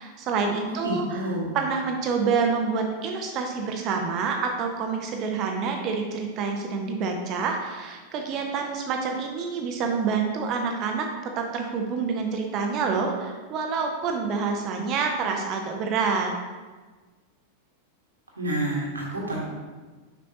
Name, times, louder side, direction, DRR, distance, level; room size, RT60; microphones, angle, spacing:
voice 1, 0.0-1.3 1.5-11.1 11.4-16.3, right 5 dB, 35° right, 3 dB, 0.7 m, -27 dB
voice 2, 0.6-1.6 18.4-19.4, right 1 dB, 80° right, -2 dB, 1.4 m, -29 dB
6.2 x 5.4 x 2.8 m, 1.3 s
figure-of-eight pair, 90°, 0 cm